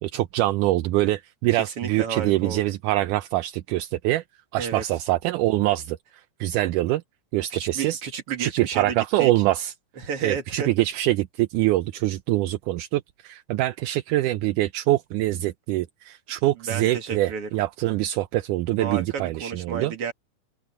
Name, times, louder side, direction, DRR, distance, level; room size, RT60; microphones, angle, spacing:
voice 1, 0.0-4.2 4.5-7.0 7.3-8.0 8.4-9.7 10.2-19.9, right 16 dB, 80° right, 2.1 m, -24 dB
voice 2, 1.6-2.7 4.6-4.8 7.5-9.3 10.0-10.7 16.7-17.6 18.8-20.1, right 6 dB, 45° right, 3.1 m, -31 dB
open air
omnidirectional pair, 3.8 m